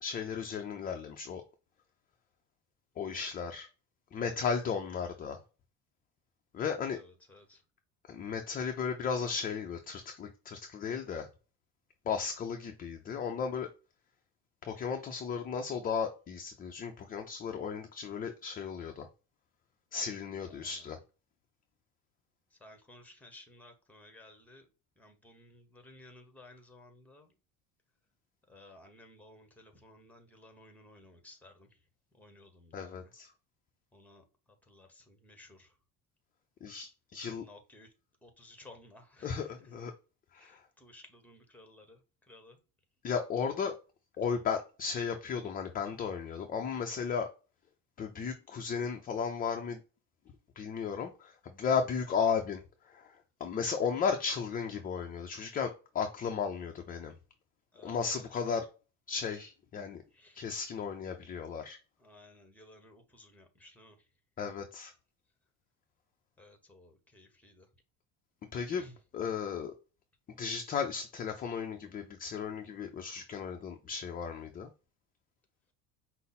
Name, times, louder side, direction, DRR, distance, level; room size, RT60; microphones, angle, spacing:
voice 1, 0.0-1.4 3.0-3.7 4.1-5.4 6.5-7.0 8.1-11.3 12.1-13.7 14.6-19.1 19.9-21.0 32.7-33.3 36.6-37.5 39.2-39.9 40.3-40.6 43.0-43.7 44.2-47.3 48.0-49.8 50.6-53.1 53.4-57.1 57.8-58.7 59.1-60.0 60.3-61.8 64.4-64.9 68.5-68.9 69.1-69.7 70.4-74.7, left 6 dB, 25° left, 0.4 m, -35 dB
voice 2, 7.3-7.6 20.5-20.7 22.6-24.6 25.0-27.3 28.5-31.7 32.2-33.1 33.9-34.2 34.7-35.7 37.3-37.9 38.2-39.3 40.4-42.0 42.3-42.6 57.7-58.3 60.2-60.4 62.0-63.9 66.4-67.7 68.8-68.9, left 2 dB, 5° left, 0.9 m, -56 dB
5.3 x 2.0 x 4.0 m
cardioid pair, 135°, 37 cm